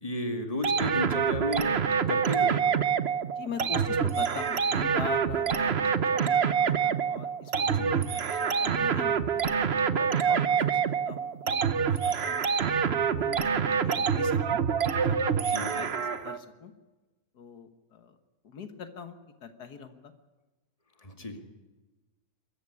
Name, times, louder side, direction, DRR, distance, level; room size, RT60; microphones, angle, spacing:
voice 1, 0.0-1.7 2.1-2.6 7.6-8.0 15.5-15.8 21.0-21.4, left 1 dB, 20° left, 5 dB, 2.3 m, -33 dB
sound 1, 0.6-16.4, right 7 dB, 45° right, 1.1 m, -26 dB
voice 2, 3.4-9.5 9.9-14.6 15.1-16.7 17.3-18.2 18.4-20.1 21.3-21.4, left 6 dB, 75° left, 8 dB, 1.9 m, -43 dB
23.5 x 15.0 x 9.7 m, 1.2 s
omnidirectional pair, 1.7 m